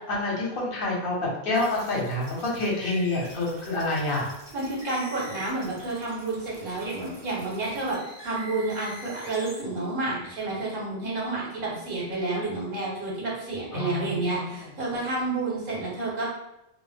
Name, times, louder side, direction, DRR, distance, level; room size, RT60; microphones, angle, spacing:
voice 1, 0.0-4.3 12.1-12.2 13.7-14.7, left 2 dB, 65° left, -3 dB, 0.9 m, -28 dB
sound 1, 1.5-9.6, equal, 30° right, 0.5 m, -46 dB
voice 2, 4.5-8.0 8.2-16.2, right 2 dB, 60° right, -4 dB, 0.9 m, -30 dB
2.2 x 2.0 x 3.3 m, 0.90 s
omnidirectional pair, 1.0 m